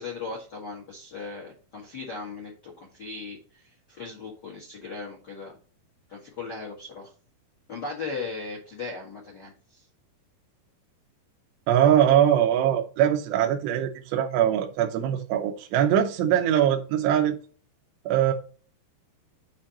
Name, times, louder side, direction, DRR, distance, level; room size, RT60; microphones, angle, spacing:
voice 1, 0.0-5.5 6.1-7.1 7.7-9.8, left 4 dB, 85° left, 0.9 m, -38 dB
voice 2, 11.7-17.4 18.1-18.3, right 10 dB, 85° right, 2.9 m, -22 dB
8.5 x 2.9 x 5.8 m
omnidirectional pair, 4.9 m